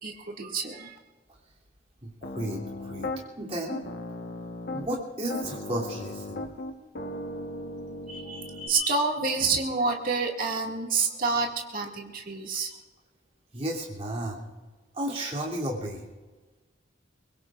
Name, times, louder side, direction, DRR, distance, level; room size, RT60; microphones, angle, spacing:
voice 1, 0.0-1.0 8.1-12.7, right 4 dB, 50° right, 0 dB, 2.1 m, -28 dB
voice 2, 2.0-3.1 3.4-3.8 4.7-6.5 13.5-14.5 14.9-16.1, right 1 dB, 35° right, -3 dB, 3.1 m, -33 dB
Piano, 2.2-3.2 3.7-4.9 5.3-8.7, left 2 dB, 60° left, 1.3 m, -37 dB
23.0 x 22.5 x 2.5 m, 1.3 s
head